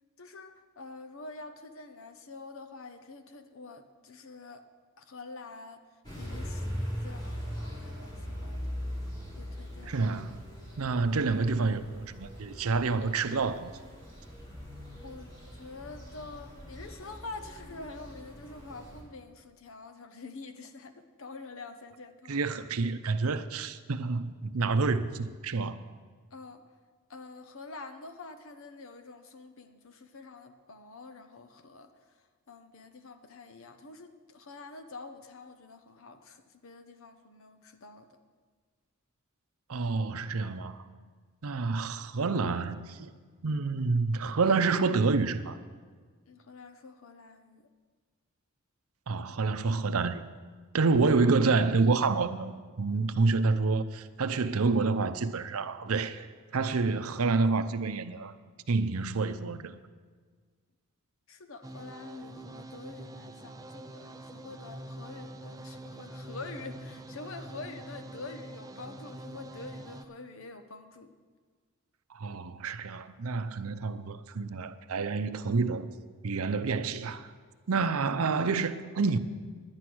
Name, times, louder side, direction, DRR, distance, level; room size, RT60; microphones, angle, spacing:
voice 1, 0.2-4.7 5.0-5.8 6.2-8.7 9.4-10.0 15.0-22.3 26.3-26.6 27.1-32.2 32.5-38.2 46.3-47.7 61.3-71.1, left 3 dB, 65° left, 0.9 m, -46 dB
sound 1, 6.0-19.0, equal, 20° left, 2.8 m, -41 dB
voice 2, 9.8-10.4 10.8-13.7 22.3-25.8 39.7-40.8 41.4-43.1 43.4-45.6 49.1-50.2 50.7-56.3 56.5-58.3 58.7-59.7 72.1-75.9 76.2-77.3 77.7-79.2, right 4 dB, 80° right, 0.6 m, -28 dB
sound 2, 61.6-70.0, right 1 dB, 15° right, 0.4 m, -45 dB
10.5 x 10.0 x 6.2 m
head